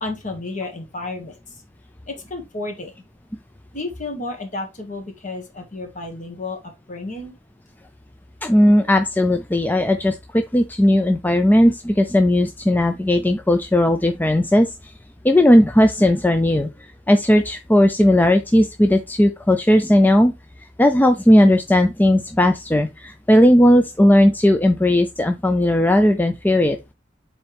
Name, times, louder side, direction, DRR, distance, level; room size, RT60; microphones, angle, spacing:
voice 1, 0.0-1.3 2.1-2.9 3.7-6.6 6.9-7.3, left 2 dB, 40° left, 1.8 m, -31 dB
voice 2, 8.4-14.7 15.2-16.7 17.1-20.3 20.8-26.8, left 1 dB, 10° left, 0.4 m, -16 dB
7.1 x 4.3 x 3.4 m
head